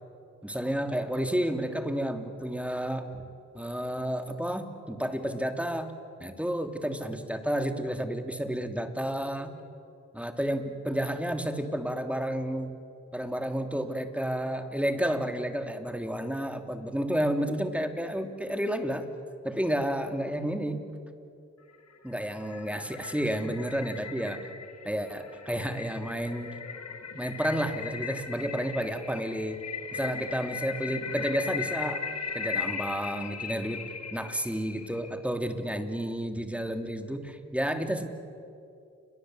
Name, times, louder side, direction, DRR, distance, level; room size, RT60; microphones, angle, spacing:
voice 1, 0.4-3.2 3.5-5.9 6.2-9.6 10.1-12.7 13.1-19.1 19.4-20.8 22.0-24.4 24.9-26.6 27.1-29.6 29.9-32.0 32.3-33.8 34.1-38.1, equal, 5° right, 6 dB, 3.1 m, -31 dB
sound 1, 21.8-35.2, left 6 dB, 55° left, 2.6 m, -38 dB
29.0 x 23.0 x 8.0 m, 2.5 s
supercardioid pair, 45°, 30 cm